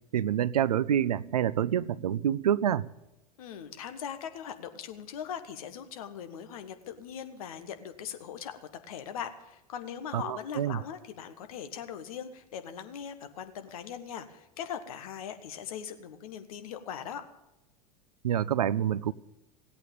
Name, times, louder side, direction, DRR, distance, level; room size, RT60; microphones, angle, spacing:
voice 1, 0.1-2.9 10.1-10.8 18.2-19.1, right 10 dB, 80° right, 20 dB, 0.5 m, -27 dB
voice 2, 3.4-8.6 8.9-17.2, left 8 dB, 65° left, 9 dB, 1.4 m, -40 dB
16.5 x 8.6 x 8.8 m, 0.93 s
figure-of-eight pair, 85°, 20 cm